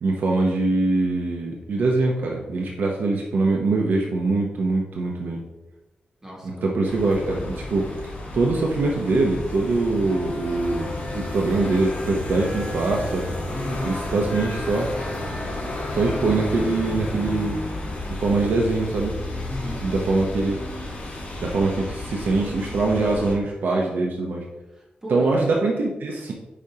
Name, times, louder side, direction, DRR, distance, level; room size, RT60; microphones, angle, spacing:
voice 1, 0.0-5.4 6.4-7.9 8.3-13.3 13.8-14.9 15.9-17.6 18.2-19.2 19.8-20.6 21.4-24.4 25.1-26.3, right 3 dB, 85° right, 0 dB, 0.8 m, -23 dB
voice 2, 6.2-7.0 13.5-13.9 19.4-19.8 24.8-25.4, equal, 15° right, -2 dB, 1.7 m, -33 dB
sound 1, 6.9-23.3, left 2 dB, 55° left, 2.3 m, -32 dB
8.3 x 5.3 x 2.8 m, 1.0 s
wide cardioid pair, 130°, 3 cm